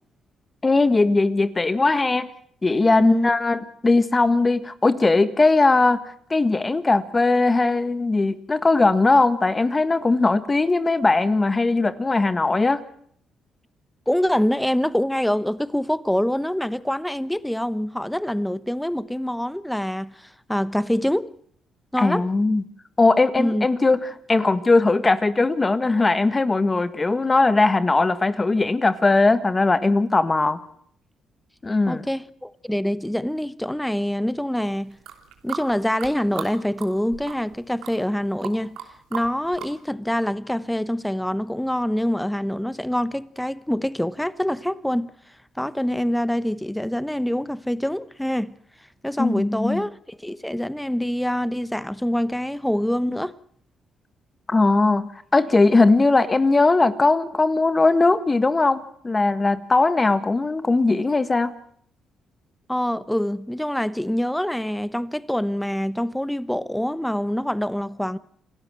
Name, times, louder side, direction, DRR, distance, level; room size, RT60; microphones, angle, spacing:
voice 1, 0.6-2.3 2.6-6.0 6.3-12.8 22.0-22.6 23.0-30.6 31.6-32.0 49.2-49.8 54.5-61.5, left 3 dB, 25° left, 1.5 m, -19 dB
voice 2, 3.0-3.3 14.1-21.3 21.9-22.3 23.4-23.7 31.9-35.0 35.4-38.8 39.1-45.1 45.6-48.5 49.0-53.4 62.7-68.2, equal, 5° left, 1.0 m, -25 dB
sound 1, 34.9-36.5 36.8-37.6 37.8-38.9 39.1-39.7, right 10 dB, 85° right, 2.9 m, -35 dB
28.0 x 12.5 x 7.6 m
supercardioid pair, 70°, 0 cm